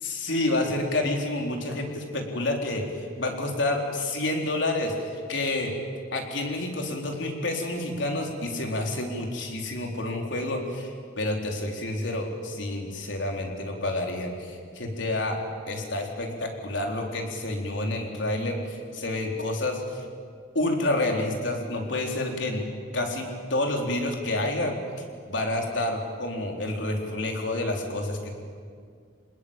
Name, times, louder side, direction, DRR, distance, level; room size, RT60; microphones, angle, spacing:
voice 1, 0.0-2.8 3.2-5.7 6.1-15.4 15.7-20.0 20.5-22.7 22.9-24.8 25.3-28.3, left 2 dB, 75° left, 2 dB, 4.0 m, -29 dB
27.0 x 20.0 x 9.0 m, 2.1 s
head